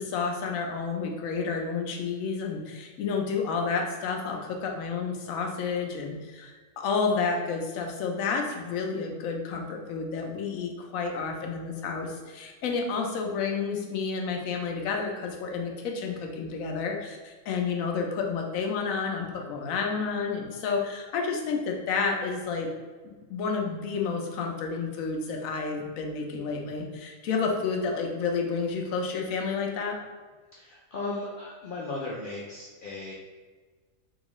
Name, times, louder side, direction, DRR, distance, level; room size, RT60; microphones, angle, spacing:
voice 1, 0.0-22.7 23.0-30.0, left 5 dB, 85° left, 2 dB, 1.0 m, -30 dB
voice 2, 30.6-33.1, left 2 dB, 70° left, -4 dB, 0.5 m, -36 dB
3.6 x 2.3 x 3.0 m, 1.4 s
omnidirectional pair, 1.4 m